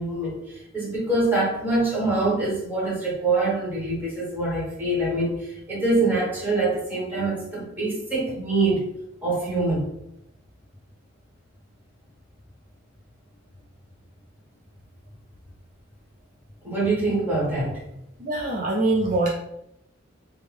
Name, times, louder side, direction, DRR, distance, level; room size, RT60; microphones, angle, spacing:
voice 1, 0.0-8.9 9.2-9.9 16.6-17.8, right 2 dB, 10° right, -6 dB, 1.3 m, -25 dB
voice 2, 18.2-19.3, right 2 dB, 40° right, -2 dB, 0.4 m, -23 dB
3.3 x 2.2 x 3.4 m, 0.80 s
head